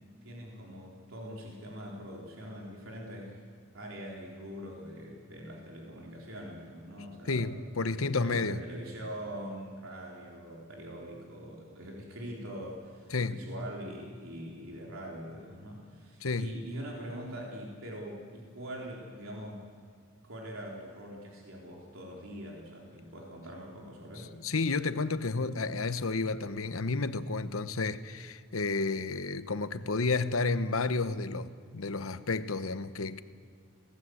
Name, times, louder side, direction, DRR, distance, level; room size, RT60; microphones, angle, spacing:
voice 1, 0.2-3.4 3.7-19.7 20.2-24.4, equal, 70° right, 3.9 m, -43 dB
voice 2, 7.3-8.6 13.1-13.4 16.2-16.5 24.4-33.2, left 3 dB, 80° left, 1.0 m, -31 dB
25.0 x 18.5 x 7.9 m
head